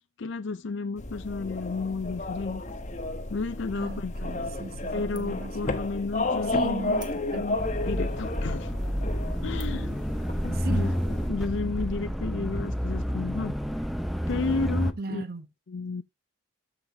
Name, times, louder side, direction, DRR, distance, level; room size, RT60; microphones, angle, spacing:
voice 1, 0.2-2.6 3.3-4.3 4.9-7.0 7.3-8.7 9.4-10.0 10.3-11.0 11.3-13.5 14.3-15.2 15.7-16.0, left 4 dB, 65° left, 0.5 m, -32 dB
sound 1, 1.0-11.3, left 2 dB, 40° left, 1.1 m, -33 dB
voice 2, 3.7-5.7 6.4-7.5 10.5-10.9 15.0-15.5, right 2 dB, 50° right, 0.9 m, -36 dB
sound 2, 4.5-4.9 5.2-5.5 6.0-6.1 6.9-7.6 8.3-8.4 8.9-9.1 9.6-10.0, right 5 dB, 20° right, 1.2 m, -51 dB
sound 3, 7.6-14.9, equal, ahead, 0.5 m, -29 dB
13.5 x 4.9 x 2.8 m
head